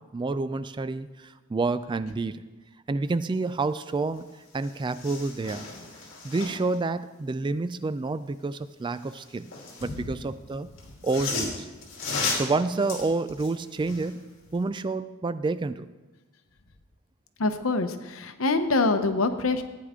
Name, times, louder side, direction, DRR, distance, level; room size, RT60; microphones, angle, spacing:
voice 1, 0.0-2.5 2.9-4.3 4.5-5.7 6.2-9.5 9.8-10.7 11.0-11.7 12.3-15.9, right 3 dB, 25° right, 14 dB, 0.3 m, -29 dB
sound 1, 4.2-4.3 4.5-6.8 8.9-10.0 10.8-14.1 14.5-14.6, left 3 dB, 65° left, 2.9 m, -35 dB
voice 2, 17.4-19.6, left 3 dB, 85° left, 8 dB, 0.9 m, -25 dB
14.5 x 9.5 x 3.7 m, 1.2 s
head